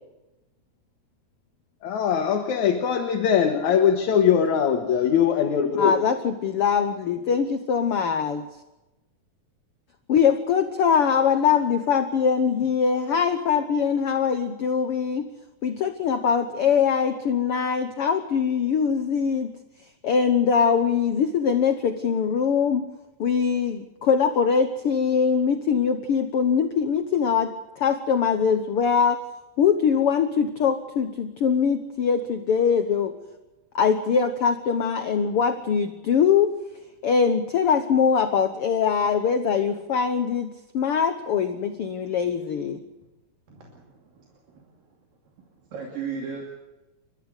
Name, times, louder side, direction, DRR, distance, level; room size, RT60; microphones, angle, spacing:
voice 1, 1.8-6.0, left 8 dB, 60° left, 4 dB, 2.6 m, -21 dB
voice 2, 5.8-8.5 10.1-15.3 15.6-19.5 20.0-22.8 23.2-29.2 29.6-33.1 33.7-36.5 37.0-42.8, left 6 dB, 80° left, 8 dB, 1.2 m, -22 dB
voice 3, 43.5-44.8 45.4-45.5 45.7-46.5, right 6 dB, 75° right, 0 dB, 4.4 m, -37 dB
30.0 x 14.0 x 8.1 m, 1.0 s
omnidirectional pair, 4.1 m